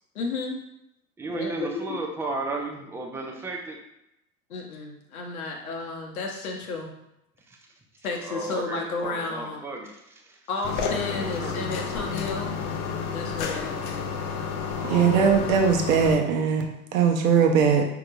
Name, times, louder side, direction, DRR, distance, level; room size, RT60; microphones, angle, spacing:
voice 1, 0.1-0.6 1.3-2.0 4.5-6.9 8.0-9.6 10.5-12.5 13.1-14.1, left 3 dB, 70° left, 1 dB, 0.9 m, -32 dB
voice 2, 1.2-3.8 8.3-9.9 10.3-10.4 11.1-11.9 14.7-15.3, right 2 dB, 5° right, 1 dB, 0.3 m, -34 dB
sound 1, 10.6-16.1, left 6 dB, 45° left, 0.6 m, -31 dB
voice 3, 14.8-17.9, right 6 dB, 65° right, 3 dB, 0.8 m, -20 dB
5.2 x 2.9 x 2.5 m, 0.82 s
figure-of-eight pair, 75°, 44 cm